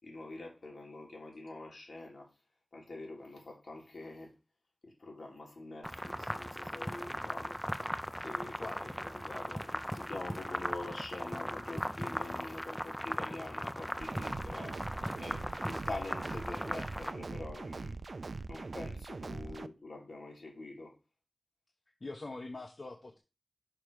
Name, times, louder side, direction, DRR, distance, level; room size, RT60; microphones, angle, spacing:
voice 1, 0.0-2.3 2.7-4.3 4.8-7.6 8.2-18.0 18.5-20.9, left 2 dB, 65° left, 3.3 m, -45 dB
sound 1, 5.8-17.1, equal, ahead, 0.6 m, -38 dB
voice 2, 8.6-9.0 19.4-19.6 22.0-23.2, left 2 dB, 50° left, 1.2 m, -44 dB
sound 2, 14.0-19.7, right 3 dB, 65° right, 0.5 m, -42 dB
6.0 x 5.8 x 5.0 m
wide cardioid pair, 70°, 0 cm